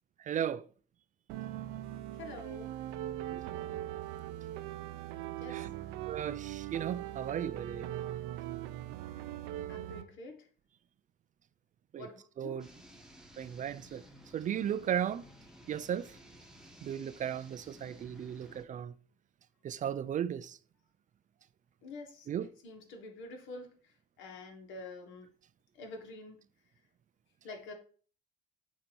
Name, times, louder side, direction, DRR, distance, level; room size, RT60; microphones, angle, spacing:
voice 1, 0.2-0.6 3.3-3.4 5.5-5.7 6.1-7.9 11.9-12.1 12.4-12.7 13.4-14.0 14.3-15.3 15.7-16.2 16.8-18.9 19.6-20.6 22.3-22.5, right 9 dB, 40° right, 0.4 m, -35 dB
sound 1, 1.3-10.1, right 13 dB, 80° right, 0.6 m, -40 dB
voice 2, 2.2-2.7 5.4-5.7 9.7-10.5 12.0-12.6 21.8-23.7 24.2-25.3 25.7-26.4 27.4-27.7, left 2 dB, 70° left, 1.6 m, -47 dB
sound 2, 12.6-18.6, equal, 5° right, 1.1 m, -55 dB
8.4 x 2.8 x 4.5 m
supercardioid pair, 85°, 21 cm